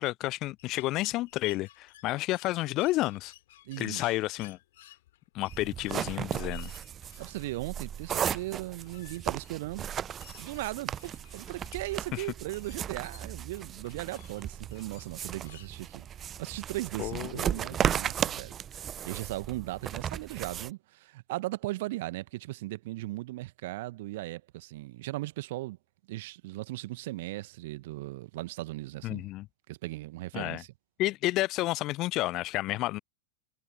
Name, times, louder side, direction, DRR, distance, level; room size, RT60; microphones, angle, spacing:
voice 1, 0.0-3.3 3.8-4.6 5.3-6.7 12.1-12.3 17.0-17.4 29.0-29.5 30.3-30.6 31.0-33.0, left 18 dB, 40° left, 0.3 m, -30 dB
sound 1, 0.6-15.7, left 15 dB, 55° left, 7.6 m, -56 dB
voice 2, 3.6-4.1 7.2-10.0 10.4-18.6 18.8-25.8 26.1-29.3 29.7-30.7, right 18 dB, 50° right, 1.6 m, -38 dB
sound 2, 5.5-20.7, right 9 dB, 25° right, 0.9 m, -35 dB
figure-of-eight pair, 90°, 0 cm